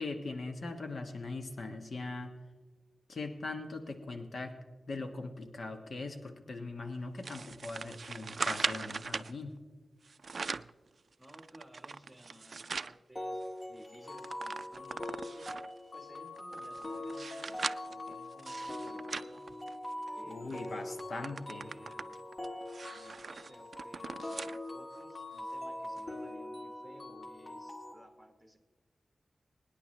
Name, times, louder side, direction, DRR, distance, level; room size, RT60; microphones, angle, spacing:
voice 1, 0.0-2.3 3.1-4.5 4.9-9.6 20.2-21.7, left 3 dB, 65° left, 5 dB, 1.2 m, -40 dB
sound 1, 7.2-9.3 10.0-10.8 11.2-13.0 13.4-13.5 13.8-15.8 16.4-20.1 20.5-20.7 21.0-24.6 25.0-25.1 26.0-26.1, right 4 dB, 60° right, 0.3 m, -40 dB
voice 2, 11.2-15.6 15.9-17.6 17.9-19.6 20.1-22.2 22.9-28.6, equal, 5° right, 5 dB, 1.4 m, -57 dB
sound 2, 13.2-27.9, left 1 dB, 35° left, 1.7 m, -43 dB
24.0 x 9.9 x 3.2 m, 1.4 s
wide cardioid pair, 105°, 0 cm